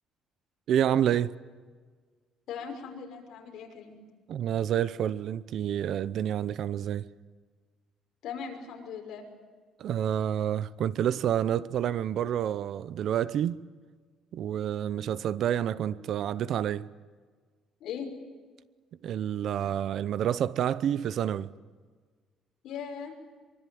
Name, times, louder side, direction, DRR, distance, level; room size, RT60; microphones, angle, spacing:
voice 1, 0.7-1.3 4.3-7.1 9.8-13.6 14.3-16.9 19.0-21.6, right 10 dB, 55° right, 0.7 m, -28 dB
voice 2, 2.5-4.0 8.2-9.3 17.8-18.1 22.6-23.1, left 7 dB, 60° left, 6.0 m, -39 dB
24.5 x 24.0 x 9.5 m
cardioid pair, 155°, 0 cm